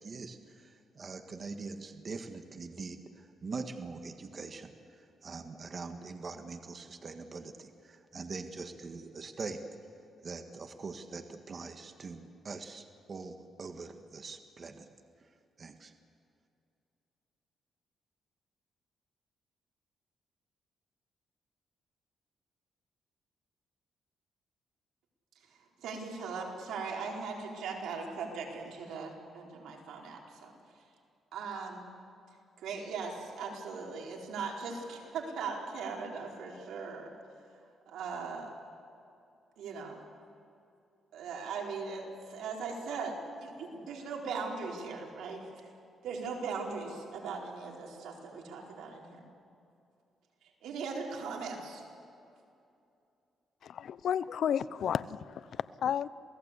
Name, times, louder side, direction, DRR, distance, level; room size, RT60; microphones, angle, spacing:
voice 1, 0.0-9.6 10.2-14.9 15.6-15.9, right 4 dB, 40° right, 6 dB, 1.6 m, -43 dB
voice 2, 25.3-30.9 31.3-31.9 32.3-38.5 39.6-40.0 41.1-45.7 46.0-49.3 50.4-51.8, right 4 dB, 90° right, -1 dB, 4.4 m, -39 dB
voice 3, 53.6-56.1, left 9 dB, 65° left, 17 dB, 0.7 m, -32 dB
28.0 x 17.5 x 8.3 m, 2.6 s
cardioid pair, 110°, 0 cm